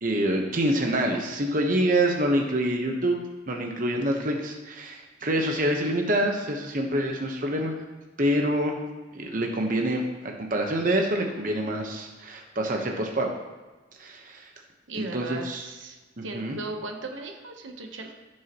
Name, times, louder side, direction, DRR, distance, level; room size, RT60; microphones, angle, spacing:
voice 1, 0.0-7.8 8.2-8.8 9.1-13.3 14.0-14.5 14.9-15.6 16.2-16.6, right 1 dB, 45° right, 1 dB, 1.1 m, -26 dB
voice 2, 14.9-18.1, right 3 dB, 80° right, 4 dB, 1.0 m, -37 dB
15.0 x 6.4 x 3.0 m, 1.2 s
head